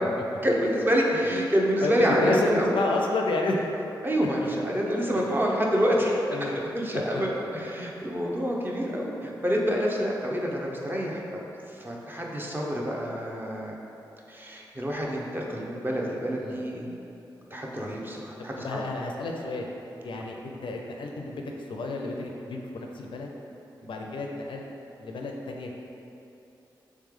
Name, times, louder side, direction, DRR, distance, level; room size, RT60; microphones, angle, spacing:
voice 1, 0.4-2.7 4.0-6.2 6.7-11.4 11.8-13.8 14.3-16.9 17.5-18.8 23.8-24.0, equal, 25° right, -2 dB, 0.7 m, -27 dB
voice 2, 1.8-3.6 5.1-5.4 6.3-6.7 7.1-7.3 16.4-16.6 18.4-19.7 20.0-23.3 23.8-24.7 25.0-25.7, left 2 dB, 70° left, 1 dB, 0.4 m, -31 dB
3.2 x 3.2 x 3.6 m, 2.9 s
cardioid pair, 45°, 9 cm